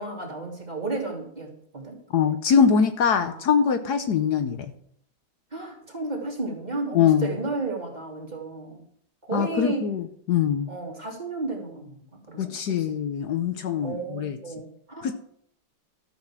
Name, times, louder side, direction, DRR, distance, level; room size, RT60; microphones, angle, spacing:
voice 1, 0.0-2.4 3.2-3.4 5.5-8.8 9.2-9.8 10.7-12.5 12.8-12.9 13.8-15.1, right 3 dB, 25° right, -1 dB, 2.9 m, -33 dB
voice 2, 2.1-4.7 6.9-7.3 9.3-10.7 12.4-14.4 15.0-15.1, left 7 dB, 65° left, 9 dB, 1.4 m, -23 dB
13.0 x 5.9 x 7.4 m, 0.66 s
omnidirectional pair, 1.9 m